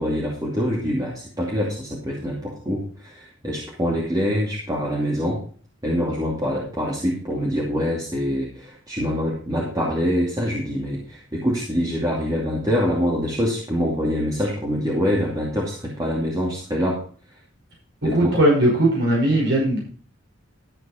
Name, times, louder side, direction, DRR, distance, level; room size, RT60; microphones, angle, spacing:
voice 1, 0.0-5.4 5.8-17.0 18.0-18.3, equal, 20° right, -4 dB, 2.6 m, -25 dB
voice 2, 18.1-19.8, right 1 dB, 60° right, -3 dB, 5.6 m, -18 dB
13.0 x 8.1 x 4.3 m, 0.43 s
head